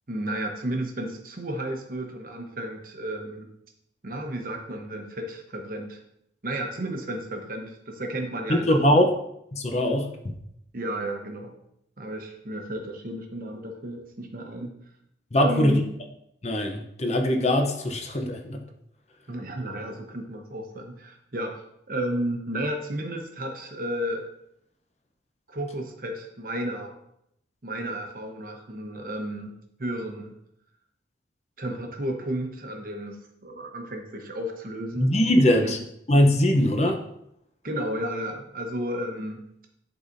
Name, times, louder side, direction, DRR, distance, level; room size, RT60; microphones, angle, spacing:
voice 1, 0.1-3.5 4.0-6.0 6.4-9.0 10.7-11.6 12.0-14.7 15.3-15.8 19.3-24.3 25.5-27.0 27.6-29.5 29.8-30.4 31.6-35.1 35.6-35.7 37.6-39.5, right 1 dB, 50° right, 3 dB, 1.0 m, -33 dB
voice 2, 8.5-9.1 9.5-10.4 15.3-15.8 16.4-18.6 35.0-35.8 36.1-37.0, left 1 dB, 35° left, 3 dB, 0.7 m, -21 dB
11.0 x 4.0 x 2.6 m, 0.76 s
head